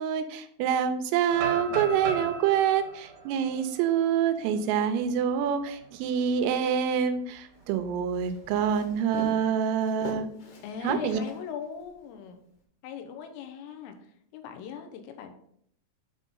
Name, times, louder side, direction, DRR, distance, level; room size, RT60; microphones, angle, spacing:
voice 1, 0.0-10.3 10.8-11.2, right 8 dB, 90° right, 8 dB, 3.3 m, -26 dB
sound 1, 1.3-5.2 5.6-5.7 6.2-6.5 7.9-8.7, right 3 dB, 65° right, 2.1 m, -38 dB
Walk footsteps, 7.5-11.9, left 2 dB, 60° left, 2.2 m, -42 dB
voice 2, 10.6-12.4 12.8-14.0 14.3-15.3, left 8 dB, 85° left, 6 dB, 3.5 m, -39 dB
9.1 x 3.6 x 5.5 m, 0.67 s
omnidirectional pair, 5.9 m